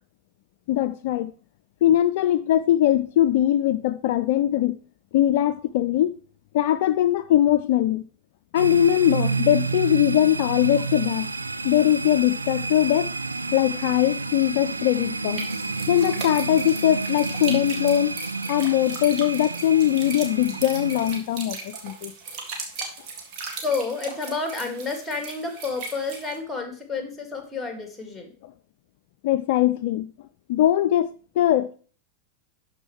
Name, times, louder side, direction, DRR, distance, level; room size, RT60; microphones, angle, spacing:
voice 1, 0.7-1.3 1.8-4.8 5.1-6.1 6.5-8.1 8.5-11.3 11.6-13.1 13.5-15.4 15.9-18.2 18.5-22.1 29.2-30.1 30.5-31.7, left 12 dB, 50° left, 0.3 m, -21 dB
sound 1, 8.6-21.2, right 3 dB, 80° right, 0.4 m, -30 dB
sound 2, 15.3-26.4, right 4 dB, 40° right, 2.0 m, -38 dB
voice 2, 23.6-28.3, left 4 dB, 5° left, 1.9 m, -30 dB
12.0 x 4.5 x 3.1 m
figure-of-eight pair, 90°, 0 cm